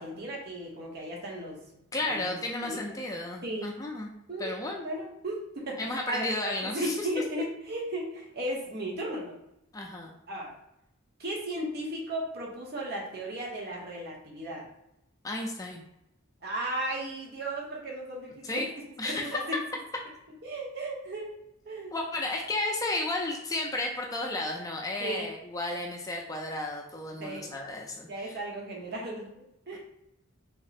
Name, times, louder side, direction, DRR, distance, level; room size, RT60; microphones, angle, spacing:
voice 1, 0.0-1.6 2.0-2.4 2.6-2.8 3.4-3.7 4.3-4.5 4.8-6.3 6.6-9.3 10.3-10.5 11.2-14.7 16.4-18.7 19.0-19.4 20.4-21.4 21.6-21.9 25.0-25.3 27.2-27.5 28.1-29.8, right 1 dB, 50° right, -3 dB, 0.8 m, -35 dB
voice 2, 1.9-4.1 4.4-4.9 5.8-7.1 9.7-10.2 15.2-15.8 18.4-18.7 19.0-19.4 21.9-28.4 29.7-29.8, left 2 dB, 15° left, 0 dB, 0.4 m, -33 dB
3.5 x 2.0 x 4.0 m, 0.83 s
head